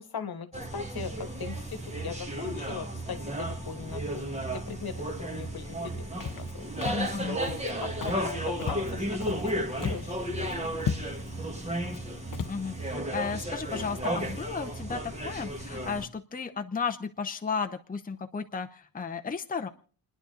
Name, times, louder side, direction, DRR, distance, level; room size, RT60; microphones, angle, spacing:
voice 1, 0.0-6.7 7.6-10.7, left 6 dB, 75° left, 9 dB, 1.4 m, -40 dB
sound 1, 0.5-16.1, right 1 dB, 15° right, 1.5 m, -34 dB
Walk footsteps, 6.2-6.5 6.8-7.1 7.4-7.7 8.0-8.3 8.6-9.5 9.8-10.1 10.4-10.5 10.8-11.3 11.9-12.0 12.3-12.6, left 7 dB, 55° left, 0.8 m, -35 dB
voice 2, 6.8-7.4 12.5-18.7 18.9-19.7, left 5 dB, 25° left, 5 dB, 0.7 m, -34 dB
30.0 x 10.0 x 3.9 m, 0.42 s
wide cardioid pair, 150°, 37 cm